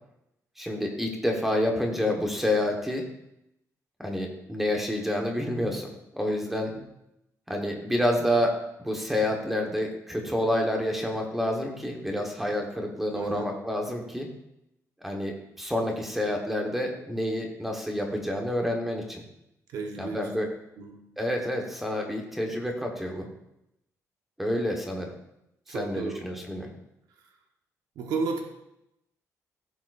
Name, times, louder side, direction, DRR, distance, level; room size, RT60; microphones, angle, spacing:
voice 1, 0.6-3.0 4.0-6.7 7.5-14.3 15.0-19.2 19.9-20.5 21.2-23.3 24.4-25.1 25.7-26.7, left 1 dB, 5° right, 1 dB, 1.3 m, -28 dB
voice 2, 13.1-13.5 19.7-20.3 20.8-21.1 25.7-26.3 28.0-28.4, right 4 dB, 85° right, 3 dB, 1.2 m, -33 dB
15.0 x 7.1 x 2.6 m, 0.84 s
cardioid pair, 175°, 6 cm